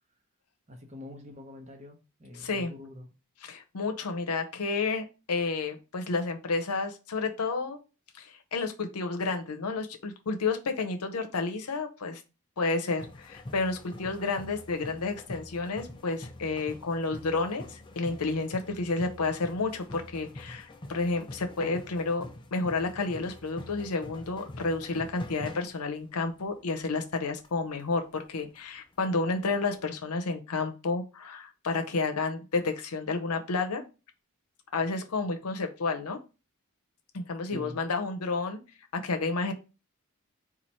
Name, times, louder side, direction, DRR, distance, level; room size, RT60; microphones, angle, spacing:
voice 1, 0.7-3.1 37.5-37.8, left 2 dB, 30° right, 3 dB, 0.9 m, -45 dB
voice 2, 2.4-2.7 3.4-7.8 8.2-12.2 12.6-22.2 22.5-33.8 34.7-36.2 37.1-38.6 38.9-39.5, left 3 dB, 90° left, 6 dB, 0.7 m, -31 dB
sound 1, 13.0-27.2 27.4-27.5 27.8-27.9 28.2-28.6 28.9-29.0 29.2-29.8, left 1 dB, 20° left, 0.4 m, -45 dB
4.4 x 2.5 x 4.2 m, 0.31 s
head